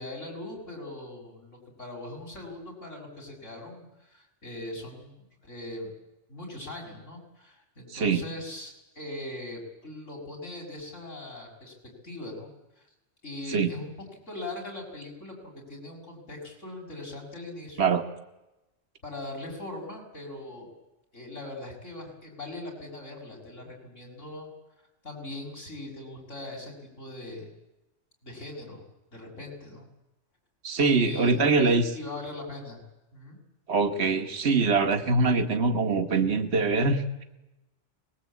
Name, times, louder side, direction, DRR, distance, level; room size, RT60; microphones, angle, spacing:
voice 1, 0.0-5.9 6.3-11.7 12.0-12.5 12.8-12.9 13.2-13.9 14.3-17.9 19.0-20.7 21.1-24.5 25.0-27.5 28.2-28.8 29.1-29.9 31.0-32.8 33.1-33.4, left 1 dB, 80° left, 0 dB, 7.0 m, -40 dB
voice 2, 7.9-8.2 13.5-13.7 17.8-18.0 30.6-31.9 33.7-37.2, right 4 dB, 60° right, 6 dB, 1.8 m, -23 dB
25.5 x 21.0 x 8.5 m, 0.95 s
omnidirectional pair, 1.3 m